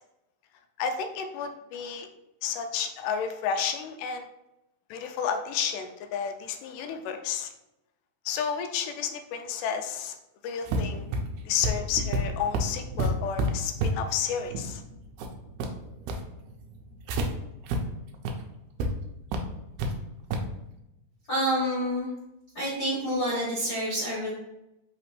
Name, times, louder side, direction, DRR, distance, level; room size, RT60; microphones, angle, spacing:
voice 1, 0.8-2.1 2.4-4.3 4.9-7.5 8.3-10.2 10.4-11.1 11.5-14.8, left 7 dB, 85° left, 6 dB, 2.1 m, -31 dB
sound 1, 10.7-17.3 17.7-17.8 18.1-18.3 18.8-18.9 19.3-19.9 20.3-20.5, right 1 dB, 80° right, 1.8 m, -30 dB
voice 2, 21.3-22.1 22.5-24.3, equal, 45° left, -7 dB, 1.2 m, -28 dB
5.0 x 3.2 x 3.1 m, 0.89 s
omnidirectional pair, 3.7 m